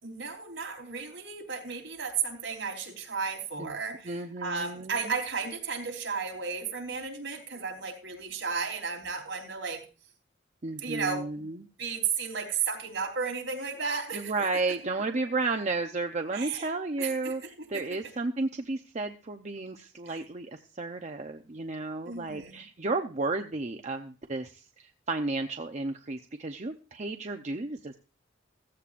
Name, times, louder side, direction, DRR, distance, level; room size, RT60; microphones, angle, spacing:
voice 1, 0.0-9.8 10.8-11.4 11.8-14.5 16.3-16.7 17.0-18.0 20.0-20.2 22.1-22.6, right 5 dB, 65° right, 2 dB, 3.7 m, -34 dB
voice 2, 4.0-5.1 10.6-11.7 14.1-28.0, right 3 dB, 35° right, 5 dB, 0.7 m, -33 dB
15.5 x 15.0 x 2.5 m, 0.35 s
head